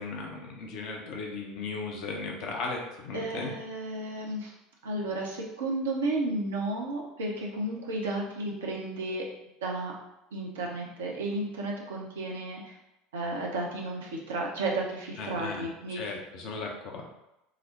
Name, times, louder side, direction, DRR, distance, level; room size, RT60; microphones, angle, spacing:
voice 1, 0.0-3.5 15.2-17.0, left 4 dB, 50° left, 0 dB, 0.6 m, -36 dB
voice 2, 3.1-4.5 4.8-9.2 9.6-9.9 10.3-12.8 13.1-16.0, right 2 dB, 70° right, -1 dB, 0.6 m, -33 dB
5.0 x 2.0 x 2.8 m, 0.91 s
figure-of-eight pair, 70°, 0 cm